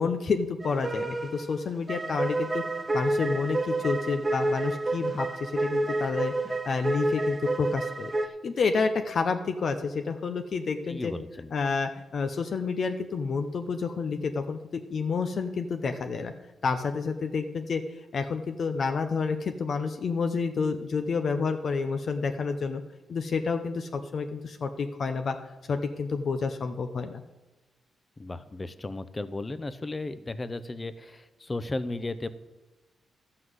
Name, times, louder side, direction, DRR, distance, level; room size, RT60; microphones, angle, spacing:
voice 1, 0.0-2.6 2.9-8.1 8.4-11.1 11.5-16.3 16.6-17.8 18.1-22.8 23.1-25.4 25.7-27.2, left 4 dB, 55° left, 6 dB, 0.8 m, -29 dB
sound 1, 0.6-8.3, right 2 dB, 25° right, 0.9 m, -29 dB
voice 2, 10.9-11.5 28.2-32.3, left 2 dB, 25° left, 13 dB, 0.7 m, -35 dB
12.5 x 5.8 x 8.0 m, 1.1 s
cardioid pair, 100°, 0 cm